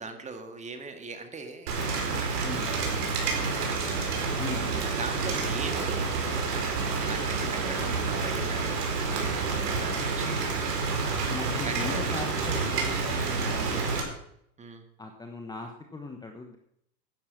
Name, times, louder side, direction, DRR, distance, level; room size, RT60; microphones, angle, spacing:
voice 1, 0.0-4.3 4.7-6.7 7.0-10.7 11.6-12.4 14.6-14.8, right 3 dB, 15° right, 7 dB, 1.8 m, -40 dB
Rain, 1.7-14.0, right 4 dB, 70° right, 4.5 m, -29 dB
voice 2, 4.3-4.9 11.3-14.1 15.0-16.6, left 3 dB, 10° left, 4 dB, 1.1 m, -39 dB
12.0 x 10.0 x 6.0 m, 0.73 s
hypercardioid pair, 120°, 48 cm